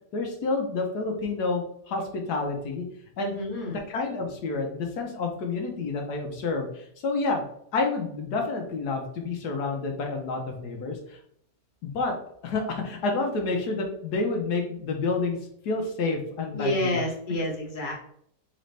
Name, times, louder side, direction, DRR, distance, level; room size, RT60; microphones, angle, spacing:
voice 1, 0.1-2.8 3.2-3.4 3.7-7.4 7.7-11.2 11.8-12.1 12.4-15.4 15.6-17.0, left 3 dB, 75° left, 2 dB, 1.2 m, -29 dB
voice 2, 3.2-3.8 16.5-17.9, left 1 dB, 35° left, -2 dB, 1.1 m, -29 dB
4.0 x 3.9 x 3.2 m, 0.69 s
omnidirectional pair, 1.8 m